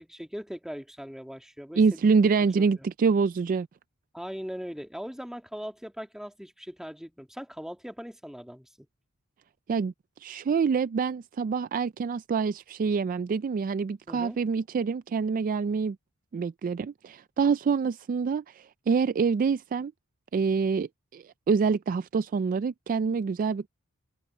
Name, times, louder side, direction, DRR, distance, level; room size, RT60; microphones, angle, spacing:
voice 1, 0.0-2.0 2.8-2.9 4.1-8.9 14.1-14.4, equal, ahead, 2.0 m, -40 dB
voice 2, 1.8-3.7 9.7-9.9 10.2-16.0 16.3-19.9 20.3-23.7, right 5 dB, 40° right, 0.3 m, -26 dB
open air
head